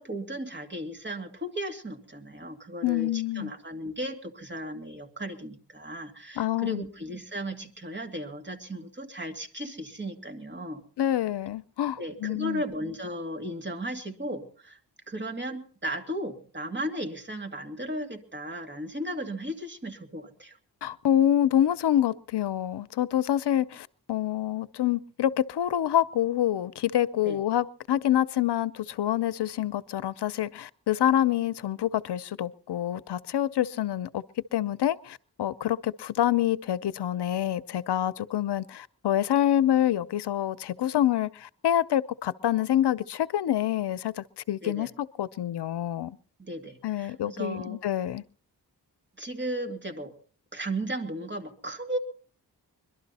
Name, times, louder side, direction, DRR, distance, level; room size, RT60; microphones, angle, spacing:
voice 1, 0.0-10.8 12.0-14.8 15.1-20.6 27.2-27.4 44.6-44.9 46.4-47.8 49.2-50.1 50.5-52.0, right 1 dB, 30° right, 2.4 m, -35 dB
voice 2, 2.8-3.5 6.4-6.8 11.0-12.6 20.8-34.2 34.5-46.2 46.8-48.2, left 11 dB, 85° left, 0.6 m, -27 dB
22.5 x 12.0 x 4.1 m
wide cardioid pair, 100°, 39 cm